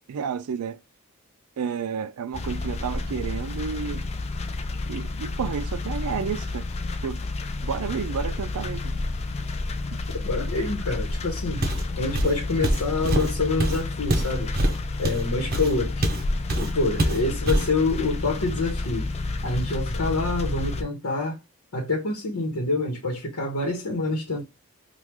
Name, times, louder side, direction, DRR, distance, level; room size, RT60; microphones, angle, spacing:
voice 1, 0.1-0.8 1.6-4.1 4.9-6.7 7.0-7.2 7.6-8.9, right 6 dB, 90° right, 0.4 m, -31 dB
sound 1, 2.3-20.8, left 2 dB, 30° left, 0.3 m, -30 dB
voice 2, 10.1-11.7 12.0-14.5 15.0-16.1 16.5-19.1 19.4-21.4 21.7-24.4, left 3 dB, 80° left, 1.0 m, -27 dB
Walk footsteps, 11.6-11.9 12.1-16.2 16.5-16.7 17.0-17.7, right 1 dB, 45° right, 0.7 m, -24 dB
3.0 x 2.4 x 3.4 m
head